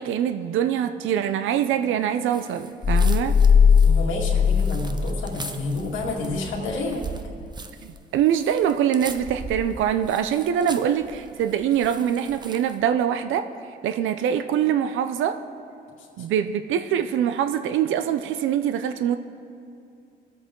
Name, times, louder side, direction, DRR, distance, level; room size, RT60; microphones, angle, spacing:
voice 1, 0.0-3.4 7.8-13.5 13.8-15.4 16.2-19.2, right 9 dB, 80° right, 9 dB, 0.5 m, -24 dB
sound 1, 2.2-12.8, right 4 dB, 20° right, 0.8 m, -40 dB
sound 2, 2.8-5.5, left 6 dB, 30° left, 0.4 m, -18 dB
voice 2, 3.8-7.0, left 2 dB, 80° left, -2 dB, 2.1 m, -29 dB
19.5 x 8.1 x 3.7 m, 2.5 s
cardioid pair, 90°, 20 cm